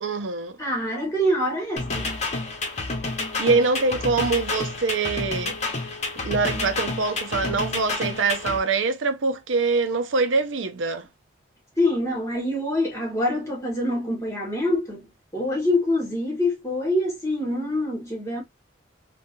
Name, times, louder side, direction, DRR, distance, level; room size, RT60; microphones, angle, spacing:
voice 1, 0.0-0.6 3.4-5.6 6.2-11.1, right 4 dB, 85° right, 0.6 m, -24 dB
voice 2, 0.6-2.1 11.8-18.4, left 1 dB, 15° left, 1.6 m, -25 dB
sound 1, 1.8-8.6, left 3 dB, 35° left, 0.9 m, -29 dB
3.7 x 2.4 x 2.6 m
head